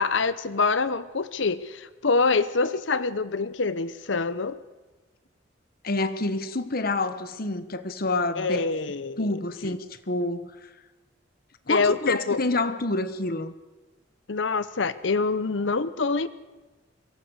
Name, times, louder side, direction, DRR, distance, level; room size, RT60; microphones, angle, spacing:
voice 1, 0.0-4.6 8.4-9.4 11.7-12.4 14.3-16.3, left 4 dB, 75° left, 14 dB, 0.9 m, -25 dB
voice 2, 5.8-8.6 9.2-9.8 10.1-10.5 11.7-13.5, left 2 dB, 50° left, 11 dB, 1.2 m, -27 dB
23.5 x 17.0 x 8.1 m, 1.2 s
head